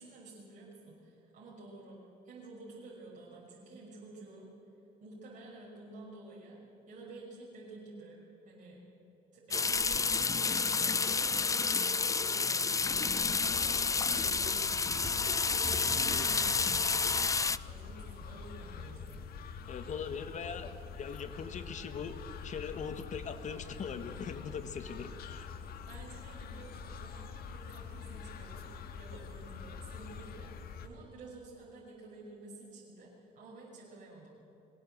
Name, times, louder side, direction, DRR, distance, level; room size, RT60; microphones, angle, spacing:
voice 1, 0.0-4.5 5.0-6.6 6.9-8.2 8.4-8.8 9.3-17.2 17.7-19.3 25.9-28.7 29.0-30.5 30.8-34.4, right 2 dB, 50° right, -5 dB, 5.9 m, -51 dB
sound 1, 9.5-17.6, left 4 dB, 20° left, 0.5 m, -30 dB
sound 2, 12.9-30.9, left 6 dB, 65° left, 1.6 m, -46 dB
sound 3, 15.0-17.5 18.1-18.2 18.8-18.9, right 1 dB, 15° right, 2.6 m, -46 dB
voice 2, 19.7-22.2 22.4-25.5, left 6 dB, 45° left, 9 dB, 1.6 m, -41 dB
22.5 x 17.0 x 7.9 m, 2.9 s
cardioid pair, 110°, 17 cm